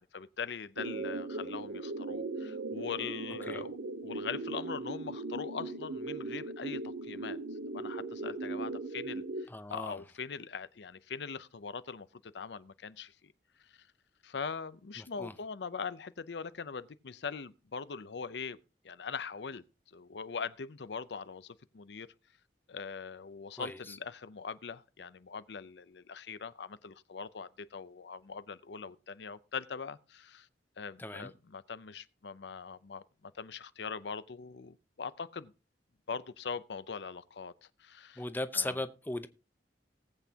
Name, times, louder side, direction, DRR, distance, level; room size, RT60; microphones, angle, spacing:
voice 1, 0.0-3.8 4.0-7.4 7.7-13.3 13.7-13.9 14.2-18.6 18.8-22.1 22.7-30.5 30.8-33.0 33.3-35.5 36.1-37.5 37.8-38.2 38.5-38.8, left 5 dB, 70° left, 0.6 m, -42 dB
sound 1, 0.8-9.4, right 2 dB, 75° right, 0.8 m, -38 dB
voice 2, 9.5-10.0 15.0-15.3 23.6-23.8 31.0-31.3 38.2-39.3, left 2 dB, 10° left, 0.7 m, -37 dB
18.5 x 8.2 x 2.8 m
head